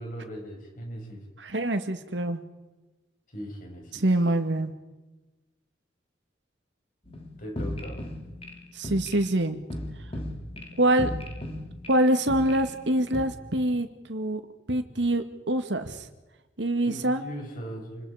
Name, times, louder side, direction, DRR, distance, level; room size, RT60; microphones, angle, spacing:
voice 1, 0.0-1.2 3.3-4.0 7.4-8.0 16.9-18.1, equal, 50° left, 1 dB, 6.9 m, -39 dB
voice 2, 1.4-2.4 3.9-4.7 8.7-9.6 10.8-11.1 11.9-14.4 14.7-16.1 16.6-17.3, right 1 dB, 75° right, 8 dB, 2.1 m, -25 dB
sound 1, 7.1-13.2, left 1 dB, 30° left, 3.1 m, -37 dB
28.5 x 22.0 x 5.1 m, 1.2 s
head